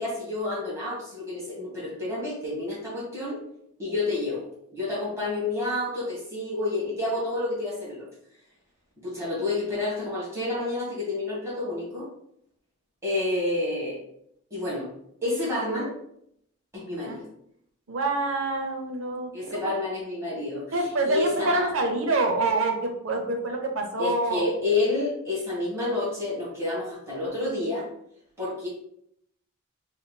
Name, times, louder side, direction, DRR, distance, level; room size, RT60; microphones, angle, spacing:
voice 1, 0.0-3.4 3.8-4.4 4.7-8.0 9.0-12.1 13.0-14.0 14.5-14.9 15.2-15.9 16.7-17.2 19.3-21.7 24.0-27.9 28.4-28.7, left 2 dB, 15° right, -7 dB, 1.3 m, -29 dB
voice 2, 17.9-19.7 20.7-24.4, right 2 dB, 90° right, 3 dB, 0.7 m, -26 dB
5.2 x 2.8 x 2.2 m, 0.73 s
head